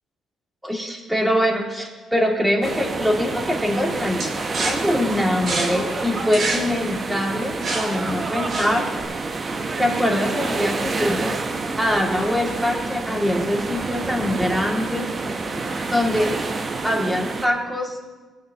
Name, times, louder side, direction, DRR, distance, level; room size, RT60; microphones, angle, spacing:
voice 1, 0.6-4.3 4.6-8.9 9.8-11.4 11.8-15.1 15.8-16.4 16.8-18.0, left 1 dB, 5° right, 0 dB, 2.4 m, -23 dB
sound 1, 2.6-17.5, right 3 dB, 40° right, 1.0 m, -28 dB
sound 2, 4.2-9.0, right 2 dB, 55° right, 2.7 m, -28 dB
19.5 x 9.2 x 3.0 m, 1.3 s
cardioid pair, 90°, 0 cm